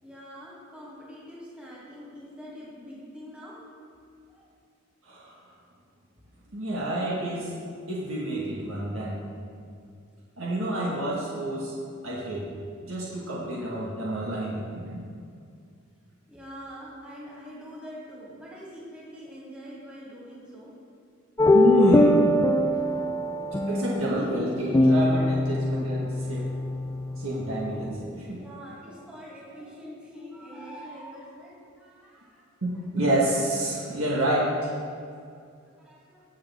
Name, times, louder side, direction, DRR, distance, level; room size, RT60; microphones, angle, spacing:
voice 1, 0.0-3.7 4.3-4.5 16.3-20.7 22.5-23.1 23.5-23.6 28.4-32.5 33.5-34.0 35.8-36.2, equal, 5° right, -8 dB, 2.5 m, -44 dB
voice 2, 5.0-5.4 6.5-7.5 7.9-9.2 10.4-11.7 12.0-12.5 12.8-15.0 21.5-22.2 23.7-26.5 27.2-28.4 32.9-34.7, right 1 dB, 90° right, -5 dB, 1.7 m, -28 dB
sound 1, 21.4-27.9, left 1 dB, 15° left, 0.3 m, -23 dB
18.0 x 6.7 x 3.6 m, 2.4 s
head